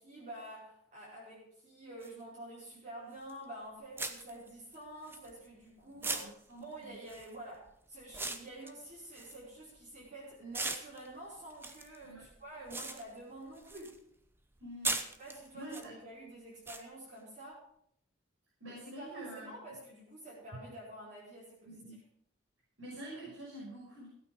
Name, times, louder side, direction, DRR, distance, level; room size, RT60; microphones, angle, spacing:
voice 1, 0.0-6.3 6.6-14.0 15.2-17.6 18.7-21.8, right 1 dB, 35° right, -8 dB, 4.9 m, -48 dB
sound 1, 2.0-2.1 3.3-3.4 4.0-5.6 6.0-10.1 10.5-14.0 14.3-15.9 16.7-16.8, right 3 dB, 10° right, 0.8 m, -40 dB
voice 2, 5.8-6.9 12.0-12.3 14.6-15.0 15.5-16.0 18.6-19.6 21.7-22.0 22.8-24.1, right 1 dB, 80° right, -5 dB, 5.7 m, -47 dB
15.5 x 8.9 x 5.4 m, 0.71 s
head